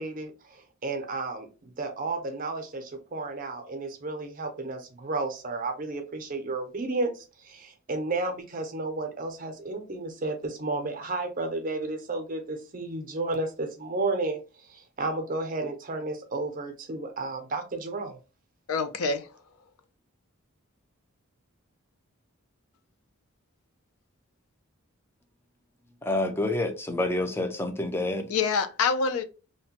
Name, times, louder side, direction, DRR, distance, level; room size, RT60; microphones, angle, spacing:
voice 1, 0.0-18.2, right 2 dB, 35° right, 0.5 m, -32 dB
voice 2, 18.7-19.3 28.3-29.2, left 5 dB, 80° left, 0.5 m, -26 dB
voice 3, 26.0-28.3, left 2 dB, 10° left, 0.3 m, -28 dB
2.8 x 2.1 x 2.8 m
head